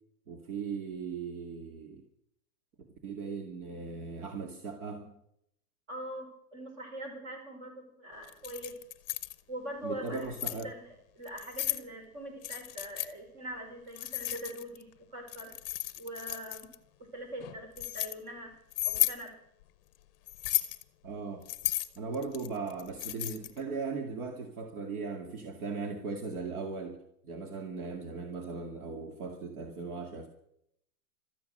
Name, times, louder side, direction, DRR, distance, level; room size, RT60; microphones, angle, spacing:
voice 1, 0.3-2.0 2.8-5.2 9.8-10.7 21.0-21.4 22.0-27.0 27.2-30.3, right 4 dB, 65° right, 4 dB, 2.3 m, -38 dB
voice 2, 5.9-8.7 9.5-15.5 16.0-16.7 17.0-18.5 18.8-19.3, right 1 dB, 40° right, 4 dB, 5.3 m, -43 dB
Keys jangling, 8.3-9.3 10.1-10.6 11.3-11.8 12.4-13.1 14.0-14.8 15.3-16.7 17.4-18.1 18.7-19.2 20.3-20.8 21.5-23.6, left 14 dB, 35° left, 0.7 m, -34 dB
15.5 x 13.5 x 6.6 m, 0.77 s
supercardioid pair, 170°, 46 cm